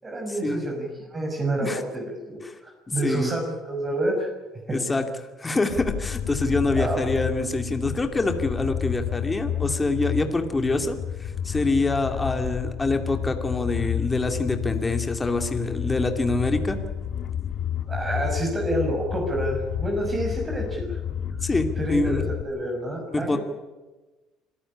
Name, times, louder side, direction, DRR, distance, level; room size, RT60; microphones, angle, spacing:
voice 1, 0.0-4.3 4.7-4.8 6.7-7.0 17.9-21.0 21.8-23.4, right 1 dB, 25° right, 1 dB, 5.9 m, -28 dB
voice 2, 4.7-5.0 5.4-16.8 21.4-22.2 23.1-23.4, left 2 dB, 15° left, 6 dB, 2.5 m, -25 dB
sound 1, 5.7-22.4, left 9 dB, 55° left, 1.8 m, -31 dB
26.0 x 14.5 x 9.9 m, 1.2 s
cardioid pair, 105°, 0 cm